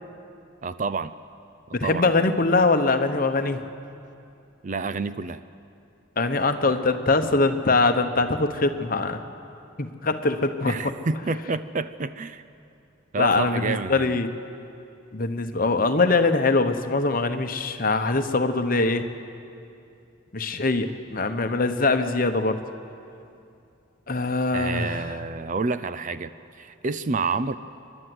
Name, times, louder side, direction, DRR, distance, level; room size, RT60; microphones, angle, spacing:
voice 1, 0.6-1.1 1.8-2.1 4.6-5.4 10.6-12.4 13.1-14.2 24.5-26.3 26.6-27.5, right 4 dB, 35° right, 14 dB, 0.4 m, -28 dB
voice 2, 1.7-3.6 6.2-9.2 9.8-10.8 13.2-14.3 15.1-19.1 20.3-22.6 24.1-25.1, left 3 dB, 40° left, 8 dB, 1.0 m, -23 dB
28.5 x 12.0 x 7.8 m, 2.6 s
head